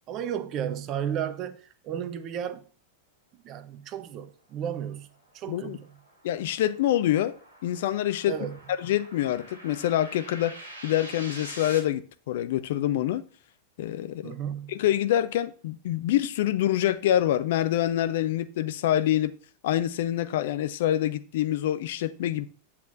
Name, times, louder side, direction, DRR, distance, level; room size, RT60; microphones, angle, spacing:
voice 1, 0.1-2.6 3.4-5.1 5.3-5.9 8.3-8.6 14.2-14.7, right 9 dB, 35° right, 0.9 m, -33 dB
sound 1, 4.9-11.8, right 1 dB, 85° left, 2.8 m, -46 dB
voice 2, 5.5-5.8 6.2-7.3 7.6-8.3 8.8-10.6 10.8-13.2 13.8-14.3 14.7-19.3 19.6-22.5, left 12 dB, 55° left, 0.5 m, -26 dB
9.2 x 8.4 x 2.7 m
figure-of-eight pair, 90°, 0 cm